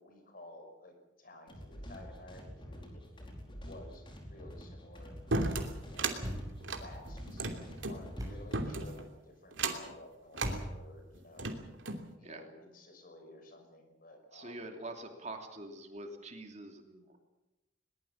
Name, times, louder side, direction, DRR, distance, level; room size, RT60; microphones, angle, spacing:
voice 1, 0.0-5.1 5.8-11.5 12.2-14.7, left 2 dB, 50° left, 5 dB, 5.6 m, -54 dB
sound 1, 1.5-8.6, equal, 25° left, 4.8 m, -48 dB
sound 2, 5.3-6.2 6.6-8.0 8.5-9.0 9.5-9.9 10.3-10.6 11.1-12.1, right 3 dB, 90° right, 2.9 m, -34 dB
Thump thud, 6.2-6.8 8.2-8.6 10.4-11.1, equal, 20° right, 7.0 m, -40 dB
voice 2, 14.3-17.2, right 2 dB, 35° right, 4 dB, 2.9 m, -45 dB
22.0 x 20.5 x 7.3 m, 1.0 s
head